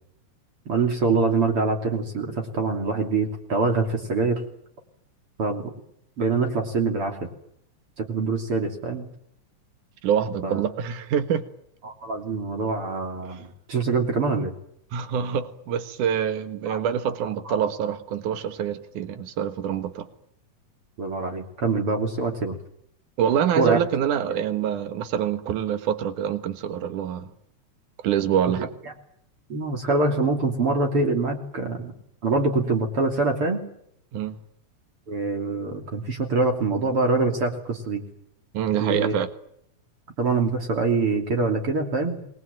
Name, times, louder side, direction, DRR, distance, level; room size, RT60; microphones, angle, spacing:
voice 1, 0.7-4.4 5.4-5.7 6.2-7.2 8.0-9.1 10.4-10.6 11.8-14.5 16.7-16.8 17.5-17.6 21.0-22.6 23.6-23.8 29.5-31.9 32.2-33.6 35.1-38.0 38.8-39.2 40.2-42.3, right 3 dB, 45° right, 3.8 m, -24 dB
voice 2, 10.0-11.5 13.3-13.4 14.9-20.1 23.2-27.3 28.0-28.7 34.1-34.4 38.5-39.3, right 9 dB, 80° right, 3.1 m, -25 dB
27.0 x 21.0 x 9.1 m
omnidirectional pair, 3.6 m